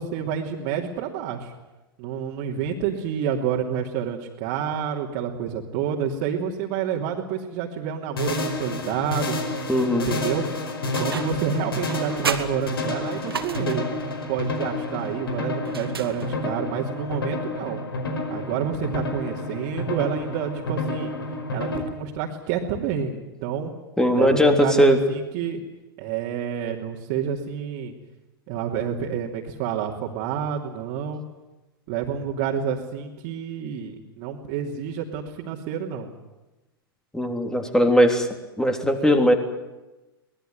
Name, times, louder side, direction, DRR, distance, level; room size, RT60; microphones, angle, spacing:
voice 1, 0.0-1.5 2.0-9.4 10.0-10.4 11.0-13.9 14.3-17.8 18.3-21.1 21.5-23.7 24.1-25.6 26.0-27.9 28.5-31.2 31.9-36.1, right 8 dB, 45° right, -2 dB, 3.1 m, -28 dB
sound 1, 8.2-21.8, left 2 dB, 75° left, 5.1 m, -30 dB
voice 2, 9.7-10.1 24.0-25.0 37.1-38.3 38.6-39.3, equal, 5° left, 5 dB, 3.4 m, -19 dB
sound 2, 10.9-11.5 11.9-14.0 15.6-16.6, right 6 dB, 80° right, 2.0 m, -32 dB
24.0 x 19.5 x 9.6 m, 1.1 s
figure-of-eight pair, 95°, 12 cm